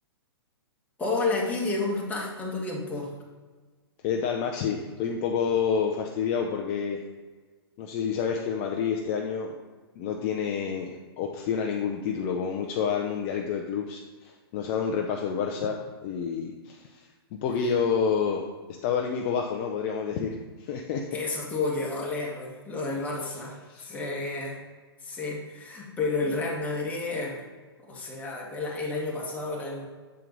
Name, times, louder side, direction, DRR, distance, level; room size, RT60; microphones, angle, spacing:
voice 1, 1.0-3.1 21.1-24.6 25.0-27.4 27.8-29.9, left 3 dB, 10° left, -3 dB, 1.4 m, -31 dB
voice 2, 4.0-7.0 7.8-9.5 10.0-18.4 18.8-21.1 23.7-23.9, left 6 dB, 35° left, 2 dB, 0.6 m, -29 dB
7.5 x 4.4 x 3.9 m, 1.4 s
hypercardioid pair, 135°, 13 cm